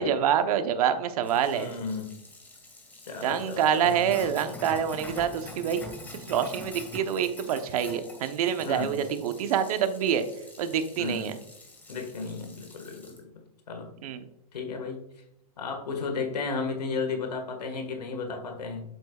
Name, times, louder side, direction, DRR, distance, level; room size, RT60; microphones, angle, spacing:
voice 1, 0.0-1.7 3.2-5.8 6.3-10.2 10.6-11.4 14.0-14.2, right 8 dB, 65° right, 9 dB, 1.0 m, -26 dB
Sink (filling or washing), 1.2-13.2, left 2 dB, 10° left, 1.9 m, -46 dB
voice 2, 1.5-2.1 3.0-4.0 8.7-9.0 11.0-11.4 11.9-13.9 14.5-15.1 15.6-18.8, left 4 dB, 90° left, 4 dB, 1.7 m, -34 dB
7.8 x 7.5 x 2.4 m, 0.80 s
hypercardioid pair, 125°, 20 cm